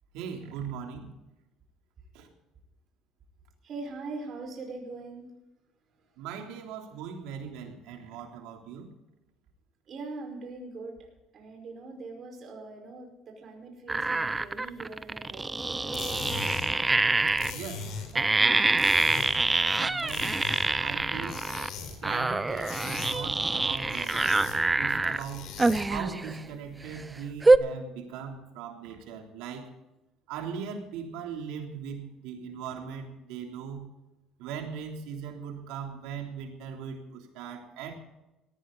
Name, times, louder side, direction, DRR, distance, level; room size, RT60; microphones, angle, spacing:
voice 1, 0.1-1.1 2.1-2.3 6.2-8.9 16.8-16.9 17.5-18.9 19.7-20.4 20.8-21.4 22.0-24.5 24.7-25.5 25.9-29.7 30.3-33.8 34.4-37.9, right 7 dB, 85° right, 3 dB, 3.4 m, -39 dB
voice 2, 3.6-5.3 9.9-11.0 11.3-16.3, right 3 dB, 50° right, 2 dB, 5.2 m, -42 dB
sound 1, 13.9-17.5 18.1-21.7 22.0-25.2 25.6-26.4 26.9-27.0 27.4-27.6, right 3 dB, 15° right, 0.7 m, -25 dB
sound 2, 15.7-26.1, left 5 dB, 70° left, 4.5 m, -41 dB
18.5 x 14.5 x 4.1 m, 1.0 s
cardioid pair, 100°, 0 cm